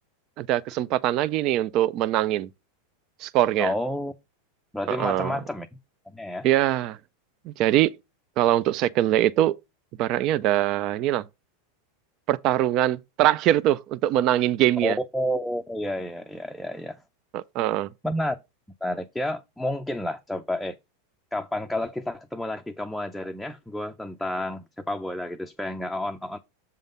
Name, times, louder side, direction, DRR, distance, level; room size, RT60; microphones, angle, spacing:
voice 1, 0.4-2.5 3.2-3.7 4.9-5.4 6.4-7.0 7.5-7.9 8.4-9.5 10.0-11.2 12.3-15.0 17.3-17.9, right 13 dB, 45° right, 0.4 m, -23 dB
voice 2, 3.6-4.1 4.7-5.7 6.1-6.5 14.8-17.0 18.0-18.4 18.8-20.7 21.3-26.4, left 1 dB, ahead, 0.5 m, -30 dB
7.2 x 3.8 x 5.2 m
supercardioid pair, 135°, 0 cm